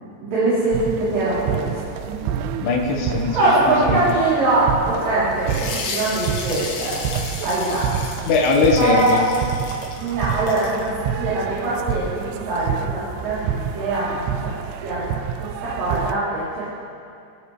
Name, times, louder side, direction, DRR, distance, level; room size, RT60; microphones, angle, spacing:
voice 1, 0.2-2.2 3.3-7.9 8.8-9.2 10.0-14.3 14.8-15.0 15.4-16.7, right 2 dB, 55° right, -11 dB, 5.0 m, -22 dB
sound 1, 0.7-16.1, right 9 dB, 90° right, 2.2 m, -29 dB
voice 2, 2.6-3.4 3.7-4.0 8.3-9.2, left 4 dB, 70° left, -1 dB, 3.7 m, -19 dB
sound 2, 5.4-10.9, left 4 dB, 90° left, 4.0 m, -33 dB
28.0 x 13.0 x 3.3 m, 2.5 s
omnidirectional pair, 5.1 m